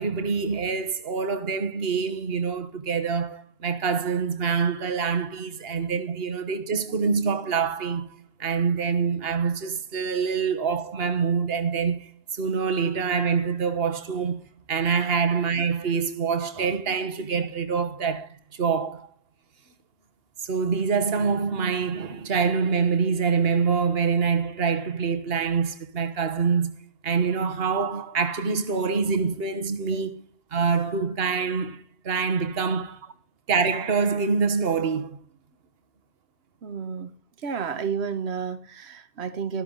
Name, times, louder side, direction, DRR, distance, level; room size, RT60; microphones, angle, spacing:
voice 1, 0.0-8.1 8.4-14.4 14.7-19.1 20.4-30.2 30.5-33.0 33.5-35.2, right 5 dB, 70° right, 1.4 m, -25 dB
voice 2, 36.6-37.1 37.4-39.6, right 6 dB, 85° right, 1.3 m, -31 dB
13.0 x 13.0 x 3.9 m
omnidirectional pair, 1.1 m